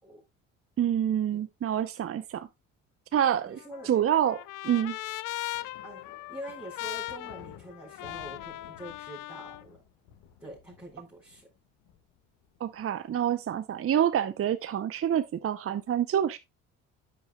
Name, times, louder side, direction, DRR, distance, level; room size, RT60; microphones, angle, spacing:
voice 1, 0.8-2.5 3.1-3.6 3.8-5.0 12.6-16.4, right 10 dB, 40° right, 0.7 m, -27 dB
Trumpet, 3.3-9.6, left 15 dB, 60° left, 0.6 m, -39 dB
voice 2, 3.5-3.9 5.8-6.0 6.3-9.8 10.4-11.4, right 1 dB, 5° right, 4.8 m, -45 dB
sound 1, 5.5-12.9, left 9 dB, 75° left, 1.8 m, -55 dB
9.8 x 8.4 x 2.3 m
hypercardioid pair, 60°, 37 cm